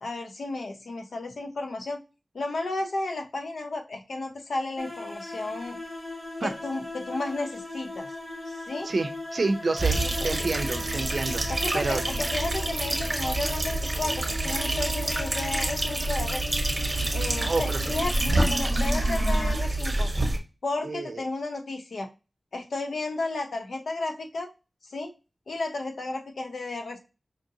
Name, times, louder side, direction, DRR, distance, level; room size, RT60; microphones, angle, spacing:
voice 1, 0.0-2.0 2.3-5.8 6.4-8.1 8.5-8.9 10.2-10.4 11.5-12.0 12.3-16.4 17.1-20.1 20.6-22.1 22.5-24.5 24.8-25.1 25.5-27.0, left 2 dB, 85° left, 4 dB, 0.7 m, -33 dB
sound 1, 4.8-19.5, left 1 dB, 25° left, 1.2 m, -38 dB
voice 2, 8.8-12.0 17.4-17.8 20.8-21.2, right 3 dB, 65° right, 9 dB, 0.5 m, -29 dB
sound 2, 9.8-20.4, right 2 dB, 40° right, 1.0 m, -27 dB
5.1 x 2.5 x 2.7 m, 0.29 s
wide cardioid pair, 65°, 0 cm